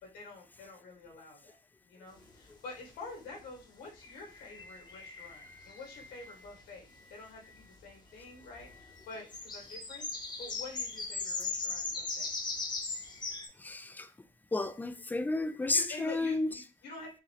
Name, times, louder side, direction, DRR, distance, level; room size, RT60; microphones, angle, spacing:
voice 1, 0.0-1.6 1.8-12.4 15.7-17.1, left 3 dB, 75° left, 2.0 m, -48 dB
sound 1, 2.2-2.3 4.0-5.9 7.9-8.0 8.5-13.5, left 3 dB, 25° left, 0.9 m, -38 dB
voice 2, 4.9-5.8 13.6-14.1 14.5-16.5, left 2 dB, 10° left, 0.4 m, -33 dB
4.7 x 2.7 x 3.1 m
cardioid pair, 110°, 17 cm